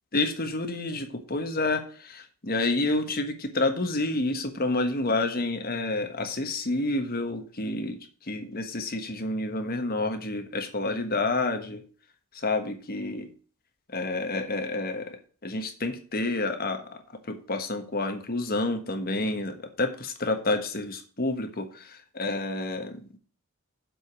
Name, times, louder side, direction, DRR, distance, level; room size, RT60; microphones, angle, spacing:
voice 1, 0.1-11.8 12.3-13.3 13.9-17.0 17.3-23.2, left 2 dB, 45° left, 6 dB, 1.3 m, -29 dB
7.7 x 5.1 x 7.4 m, 0.41 s
head